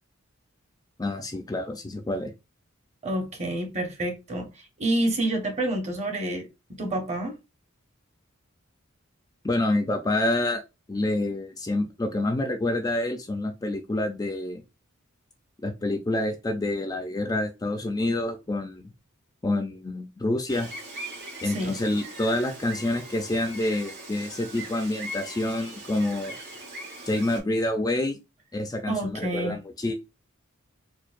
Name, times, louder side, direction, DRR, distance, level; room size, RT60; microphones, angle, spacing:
voice 1, 1.0-2.3 9.4-10.6 10.9-14.6 15.6-18.8 19.4-20.7 21.4-26.3 27.1-28.2 28.5-29.9, left 1 dB, 15° left, 0.4 m, -27 dB
voice 2, 3.0-4.5 4.8-6.5 6.8-7.3 21.4-21.8 28.9-29.6, right 1 dB, 35° right, 0.9 m, -28 dB
Gull seagull, 20.5-27.4, right 1 dB, 55° right, 1.8 m, -40 dB
4.5 x 2.2 x 2.5 m
head